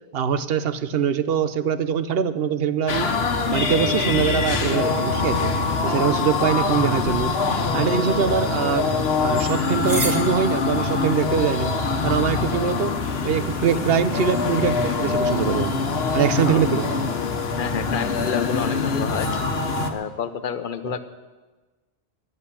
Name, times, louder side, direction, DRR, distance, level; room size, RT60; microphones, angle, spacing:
voice 1, 0.1-3.1 3.5-5.5 5.8-7.3 7.7-8.9 9.2-11.7 12.0-13.0 13.2-15.8 16.1-17.0 20.9-21.0, right 7 dB, 70° right, 13 dB, 0.9 m, -23 dB
sound 1, 2.9-19.9, left 4 dB, 80° left, 1.3 m, -24 dB
sound 2, 7.0-13.5, right 1 dB, 85° right, 2.7 m, -38 dB
voice 2, 17.5-19.3 19.9-21.0, left 7 dB, 55° left, 11 dB, 0.9 m, -29 dB
11.0 x 8.3 x 9.8 m, 1.2 s
omnidirectional pair, 1.0 m